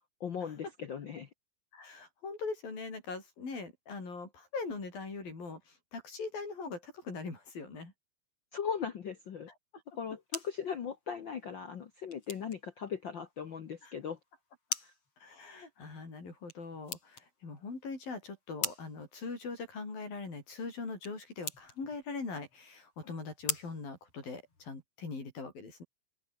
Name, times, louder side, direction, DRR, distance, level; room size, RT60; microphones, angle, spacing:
voice 1, 0.2-1.3 8.5-9.5 9.9-14.2 14.8-14.9, left 7 dB, 65° left, 1.1 m, -38 dB
voice 2, 1.7-7.9 13.8-13.9 15.2-25.8, left 4 dB, 90° left, 9.5 m, -41 dB
sound 1, 9.9-24.8, left 3 dB, 40° left, 7.6 m, -45 dB
open air
omnidirectional pair, 4.0 m